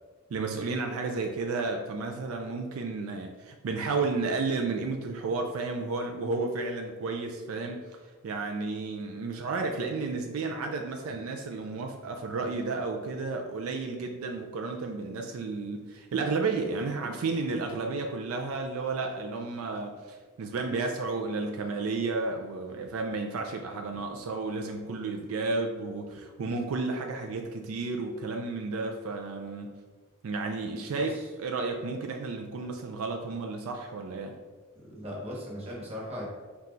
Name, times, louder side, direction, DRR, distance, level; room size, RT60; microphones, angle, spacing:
voice 1, 0.3-7.8 8.2-29.7 30.2-34.3, right 3 dB, 85° right, 3 dB, 0.4 m, -32 dB
voice 2, 34.7-36.2, equal, 30° right, -3 dB, 1.0 m, -38 dB
4.2 x 2.3 x 3.8 m, 1.4 s
head